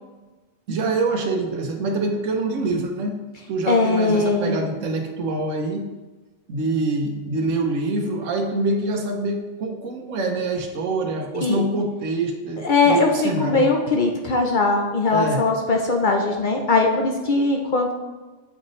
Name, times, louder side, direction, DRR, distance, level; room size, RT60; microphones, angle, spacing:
voice 1, 0.7-3.2 3.5-5.8 6.5-13.7 15.1-15.4, right 2 dB, 80° right, 4 dB, 1.2 m, -25 dB
voice 2, 3.7-4.7 11.4-11.6 12.6-17.9, left 3 dB, 50° left, 2 dB, 0.6 m, -20 dB
6.8 x 5.4 x 3.1 m, 1.2 s
omnidirectional pair, 1.3 m